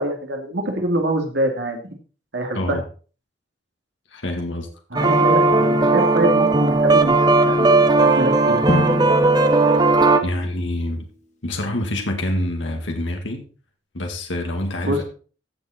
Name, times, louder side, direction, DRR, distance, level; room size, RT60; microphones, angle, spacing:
voice 1, 0.0-1.9 2.3-2.8 4.9-8.7 14.9-15.0, right 1 dB, 65° right, 3 dB, 2.8 m, -24 dB
voice 2, 4.1-4.7 10.2-11.1 11.4-13.4 13.9-15.0, left 1 dB, 70° left, 3 dB, 2.0 m, -26 dB
sound 1, 4.9-10.2, right 3 dB, 20° right, 1.0 m, -16 dB
Drum, 8.7-10.6, left 1 dB, 40° left, 2.8 m, -27 dB
15.5 x 6.5 x 4.4 m, 0.39 s
head